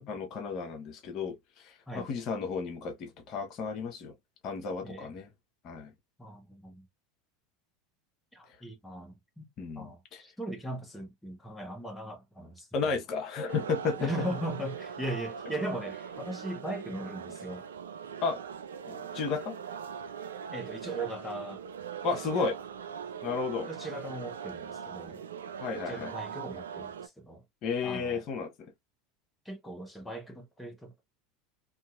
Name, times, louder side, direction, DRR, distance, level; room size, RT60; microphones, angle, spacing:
voice 1, 0.0-4.1 4.4-5.3 5.6-5.9 9.6-10.2 12.7-14.1 18.2-18.4 18.9-19.6 22.0-22.6 23.2-23.7 25.6-26.1 27.6-28.5, left 5 dB, 45° left, 0.9 m, -33 dB
voice 2, 6.2-6.9 8.3-9.5 9.7-12.7 14.0-17.7 20.5-21.6 23.7-25.2 25.9-27.4 27.8-28.2 29.4-31.0, right 1 dB, 5° left, 1.0 m, -39 dB
sound 1, 13.5-27.1, right 7 dB, 80° right, 0.4 m, -41 dB
2.7 x 2.7 x 2.4 m
hypercardioid pair, 85°, 0 cm